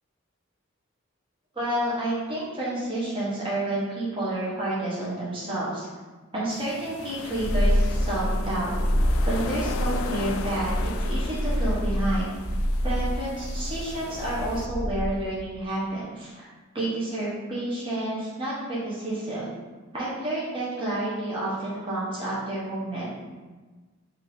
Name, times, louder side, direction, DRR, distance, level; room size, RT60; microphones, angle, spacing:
voice 1, 1.5-5.9 6.3-8.7 9.3-12.3 12.8-16.5 16.7-19.5 19.9-23.1, right 1 dB, 25° right, -8 dB, 1.2 m, -30 dB
sound 1, 6.5-14.7, left 5 dB, 75° left, 0.3 m, -38 dB
Purr, 7.3-15.4, equal, 55° right, 0.7 m, -27 dB
5.2 x 2.7 x 3.5 m, 1.3 s
head